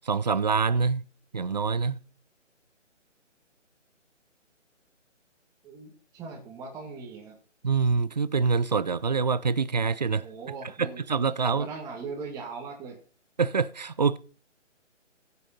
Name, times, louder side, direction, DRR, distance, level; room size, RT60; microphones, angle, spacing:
voice 1, 0.1-1.0 1.3-2.0 7.6-10.3 10.8-11.7 13.4-14.2, right 5 dB, 35° right, 0.5 m, -25 dB
voice 2, 5.6-7.3 10.2-11.0 11.6-13.0, right 4 dB, 10° right, 1.8 m, -39 dB
15.5 x 6.9 x 5.4 m
figure-of-eight pair, 145°, 37 cm